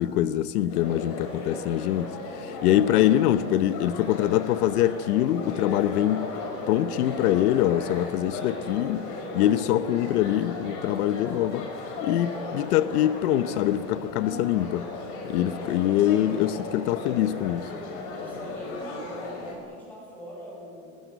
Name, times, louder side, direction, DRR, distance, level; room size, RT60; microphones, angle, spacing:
voice 1, 0.0-6.3 6.7-9.1 9.3-11.7 12.0-14.8 15.2-17.7, left 12 dB, 80° left, 0.9 m, -24 dB
voice 2, 0.6-1.1 14.2-14.6 15.6-16.1 18.2-21.0, equal, 5° left, 7.8 m, -43 dB
sound 1, 0.7-19.5, left 3 dB, 40° left, 4.8 m, -36 dB
20.0 x 19.5 x 9.2 m
supercardioid pair, 170°, 44 cm